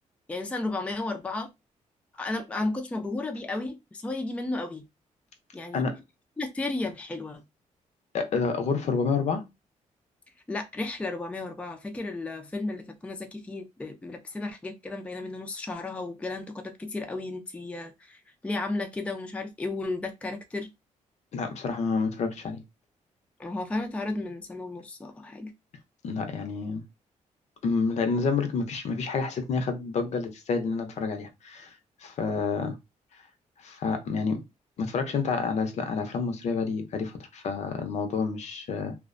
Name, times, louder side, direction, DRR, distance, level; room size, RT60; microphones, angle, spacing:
voice 1, 0.3-1.5 2.2-4.8 5.5-5.8 6.4-7.4 10.5-20.7 23.4-25.5, left 2 dB, 10° left, 0.4 m, -33 dB
voice 2, 8.1-9.5 21.3-22.6 26.0-26.8 27.6-31.7 32.0-32.8 33.6-34.4 34.8-38.9, left 4 dB, 60° left, 0.6 m, -29 dB
2.4 x 2.1 x 2.5 m
cardioid pair, 125°, 13 cm